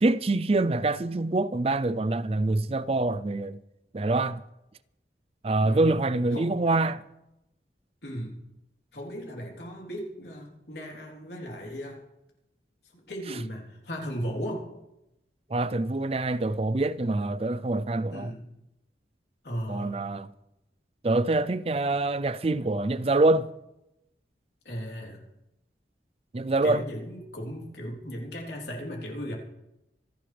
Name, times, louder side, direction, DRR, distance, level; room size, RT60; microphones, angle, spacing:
voice 1, 0.0-3.6 3.9-4.4 5.4-7.0 15.5-18.3 19.7-20.3 21.0-23.5 26.3-26.8, right 2 dB, 35° right, 0.5 m, -25 dB
voice 2, 5.6-6.0 6.3-6.8 8.0-8.3 8.9-12.0 12.9-14.7 18.1-18.4 19.4-20.0 24.7-25.3 26.6-29.3, equal, 70° left, 3.6 m, -36 dB
26.5 x 11.0 x 3.4 m
head